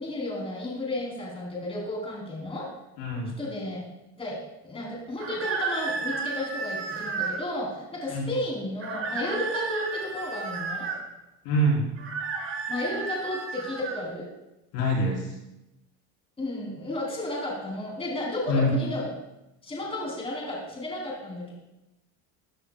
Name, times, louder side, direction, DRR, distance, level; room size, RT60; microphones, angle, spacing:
voice 1, 0.0-2.7 3.4-3.8 4.2-4.4 4.6-10.9 12.7-14.3 16.4-19.1 19.6-21.5, left 1 dB, 15° left, -3 dB, 3.4 m, -33 dB
voice 2, 3.0-3.3 8.1-8.3 11.4-11.9 14.7-15.3 18.5-18.8, equal, 85° left, -2 dB, 3.8 m, -24 dB
sound 1, 5.2-7.4 8.8-11.0 12.0-14.0, right 4 dB, 40° right, 2.4 m, -32 dB
14.5 x 9.6 x 2.3 m, 0.93 s
cardioid pair, 135°, 33 cm